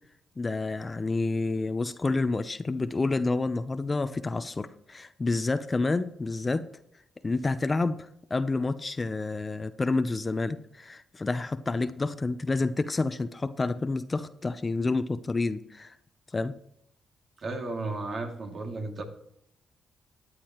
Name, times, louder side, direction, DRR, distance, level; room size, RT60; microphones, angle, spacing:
voice 1, 0.4-6.7 7.2-8.0 8.3-15.9 16.3-16.5, left 3 dB, 30° left, 12 dB, 0.8 m, -29 dB
voice 2, 17.4-19.0, right 2 dB, 55° right, 2 dB, 2.6 m, -34 dB
14.0 x 9.9 x 3.1 m, 0.74 s
supercardioid pair, 60°, 0 cm